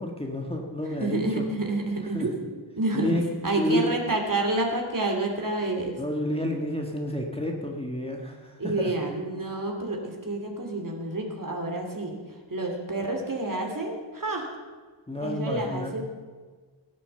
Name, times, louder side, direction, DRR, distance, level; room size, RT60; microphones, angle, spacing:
voice 1, 0.0-1.5 2.1-2.3 2.9-3.3 3.6-3.9 6.0-8.9 15.1-15.9, equal, 10° left, 0 dB, 1.6 m, -30 dB
voice 2, 1.0-3.1 3.4-6.0 8.6-12.1 12.5-14.5 15.2-16.0, right 2 dB, 40° right, 2 dB, 2.8 m, -29 dB
18.0 x 8.5 x 7.0 m, 1.4 s
wide cardioid pair, 100°, 49 cm